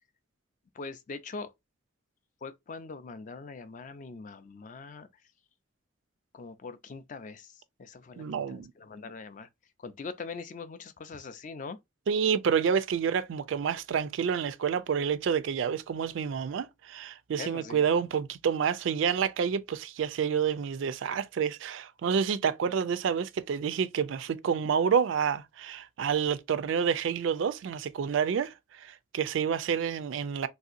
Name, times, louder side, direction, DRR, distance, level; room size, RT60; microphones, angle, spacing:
voice 1, 0.7-1.5 2.4-5.1 6.3-9.5 9.8-11.8 17.4-17.8, left 4 dB, 40° left, 0.3 m, -42 dB
voice 2, 8.2-8.7 12.1-30.5, right 7 dB, 75° right, 0.3 m, -28 dB
3.2 x 2.7 x 2.4 m
head